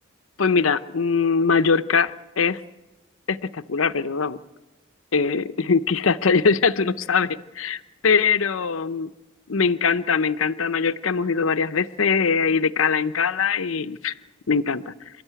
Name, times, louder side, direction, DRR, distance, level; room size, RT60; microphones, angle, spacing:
voice 1, 0.4-2.6 3.3-4.4 5.1-9.1 9.5-14.1 14.5-14.9, left 5 dB, 90° left, 12 dB, 0.7 m, -22 dB
28.0 x 13.0 x 9.3 m, 1.0 s
head